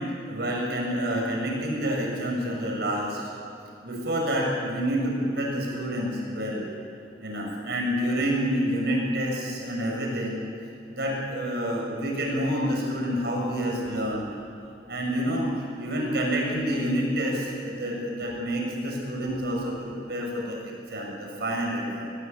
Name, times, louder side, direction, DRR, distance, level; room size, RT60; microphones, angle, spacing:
voice 1, 0.0-3.2 3.8-6.7 7.2-10.4 10.9-14.3 14.9-22.1, equal, 65° right, -1 dB, 7.2 m, -28 dB
25.0 x 19.5 x 8.6 m, 2.6 s
head